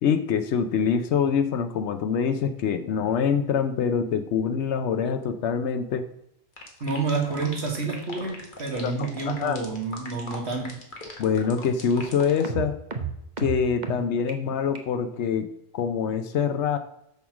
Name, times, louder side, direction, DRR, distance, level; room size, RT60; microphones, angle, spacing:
voice 1, 0.0-6.1 8.8-8.9 9.3-9.6 11.2-12.7 13.4-15.5 15.7-16.8, left 7 dB, 90° left, 8 dB, 1.0 m, -25 dB
sound 1, 6.6-12.4, left 3 dB, 45° left, 1.8 m, -40 dB
voice 2, 6.8-10.8, right 4 dB, 75° right, 1 dB, 2.2 m, -29 dB
sound 2, 6.9-7.0 7.4-7.5 7.8-8.0 8.3-8.4 8.8-8.9 9.2-9.3 9.7-9.8 10.1-10.3 10.6-10.7 11.1-11.2 11.5-11.6 12.0-12.1 12.4-13.9 14.3-14.4 14.7-14.8, right 6 dB, 45° right, 1.0 m, -34 dB
7.0 x 6.4 x 6.0 m, 0.80 s
omnidirectional pair, 1.1 m